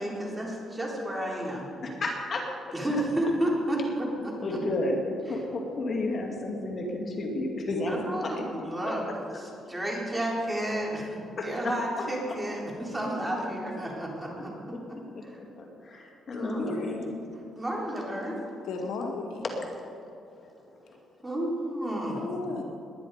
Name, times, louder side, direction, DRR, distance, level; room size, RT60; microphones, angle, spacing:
voice 1, 0.0-1.7 2.7-4.6 7.9-9.1 9.3-14.5 15.2-15.4 16.4-16.7 17.5-18.4 21.2-22.2, right 1 dB, 10° right, -3 dB, 4.2 m, -31 dB
voice 2, 1.8-2.7 4.4-8.4 11.4-11.5 12.3-12.4 15.1-17.3 20.9-21.0, left 2 dB, 45° left, 1 dB, 2.6 m, -32 dB
voice 3, 16.4-16.9 18.6-19.4 22.1-22.6, left 3 dB, 85° left, 1 dB, 1.9 m, -35 dB
20.0 x 10.5 x 5.1 m, 2.7 s
cardioid pair, 90°, 0 cm